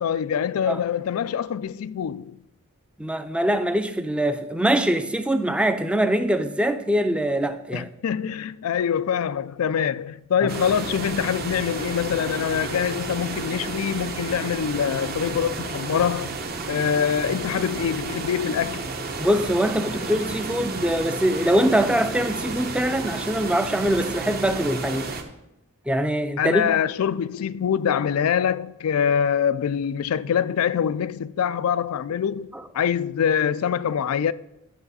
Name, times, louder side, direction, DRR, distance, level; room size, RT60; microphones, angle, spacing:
voice 1, 0.0-2.4 7.7-16.4 16.7-18.8 26.4-32.5 32.7-34.3, left 8 dB, 80° left, 0.4 m, -24 dB
voice 2, 3.0-7.9 19.2-25.1 25.9-26.7 32.5-32.6, right 1 dB, 5° right, 0.5 m, -23 dB
sound 1, 10.5-25.2, right 3 dB, 45° right, 0.9 m, -32 dB
11.0 x 6.7 x 4.1 m
head